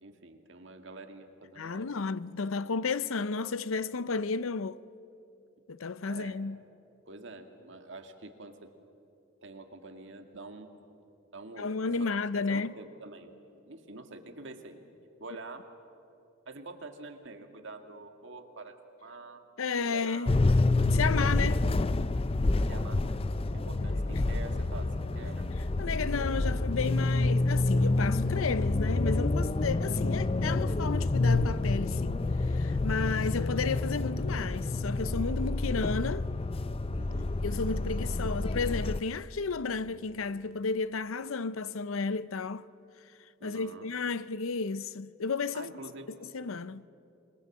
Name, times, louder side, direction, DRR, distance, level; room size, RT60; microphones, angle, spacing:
voice 1, 0.0-2.1 6.1-6.4 7.1-8.7 9.4-10.7 11.3-11.7 12.0-12.1 12.5-14.9 15.2-15.7 16.5-19.5 19.9-20.3 22.6-25.5 25.9-26.0 33.0-33.2 37.0-37.3 43.4-43.9 45.5-46.2, right 3 dB, 60° right, 2.0 m, -46 dB
voice 2, 1.6-4.8 5.7-6.6 11.6-12.7 19.6-20.3 20.9-21.7 23.9-24.0 25.8-36.3 37.4-42.6 43.4-45.7 46.3-46.9, left 4 dB, 75° left, 0.6 m, -33 dB
sound 1, 20.3-39.0, left 2 dB, 25° left, 0.5 m, -28 dB
26.5 x 21.5 x 7.3 m
head